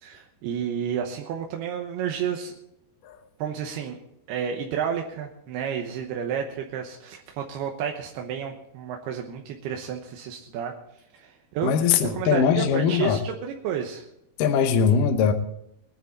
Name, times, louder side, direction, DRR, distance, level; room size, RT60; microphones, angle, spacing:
voice 1, 0.0-2.5 3.4-4.0 4.3-10.7 11.1-11.8 12.1-14.1, right 8 dB, 85° right, 2 dB, 3.0 m, -31 dB
voice 2, 11.6-13.2 14.4-15.3, left 7 dB, 70° left, 6 dB, 2.3 m, -21 dB
20.5 x 10.5 x 4.2 m, 0.77 s
omnidirectional pair, 4.5 m